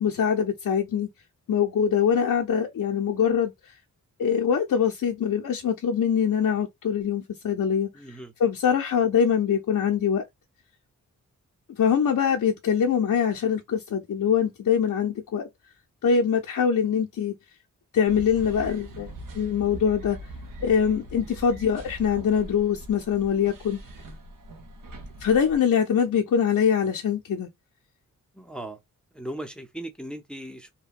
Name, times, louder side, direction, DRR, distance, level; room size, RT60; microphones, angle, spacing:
voice 1, 0.0-1.1 1.5-3.5 4.2-10.2 11.7-15.5 16.0-17.3 17.9-20.2 20.6-23.8 25.2-27.5, left 7 dB, 65° left, 0.6 m, -23 dB
voice 2, 7.9-8.3 28.3-28.8 29.1-30.7, right 1 dB, 5° left, 0.6 m, -37 dB
sound 1, 18.1-25.6, right 1 dB, 80° right, 0.8 m, -42 dB
2.8 x 2.1 x 2.4 m
wide cardioid pair, 110°, 33 cm